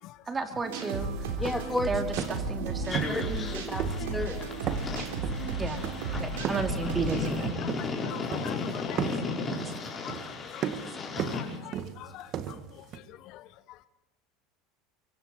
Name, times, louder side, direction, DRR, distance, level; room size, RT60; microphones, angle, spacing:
voice 1, 0.3-1.1 1.9-3.1 5.5-5.9 6.1-7.6, right 4 dB, 25° right, 2.6 m, -33 dB
sound 1, 0.6-7.5, right 3 dB, 75° right, 3.6 m, -34 dB
sound 2, 0.9-1.0 1.3-1.9 2.2-2.6 2.9-3.5 3.8-4.4 4.7-6.8 7.1-8.0 8.3-8.7 9.0-13.0, right 9 dB, 50° right, 1.8 m, -35 dB
voice 2, 1.4-2.0 3.1-4.5, left 1 dB, 5° left, 2.9 m, -33 dB
sound 3, 2.9-11.6, left 4 dB, 25° left, 5.0 m, -35 dB
voice 3, 8.0-9.5 9.9-12.3 12.8-13.4, left 15 dB, 55° left, 0.8 m, -44 dB
24.5 x 24.0 x 4.5 m
hypercardioid pair, 85°, 0 cm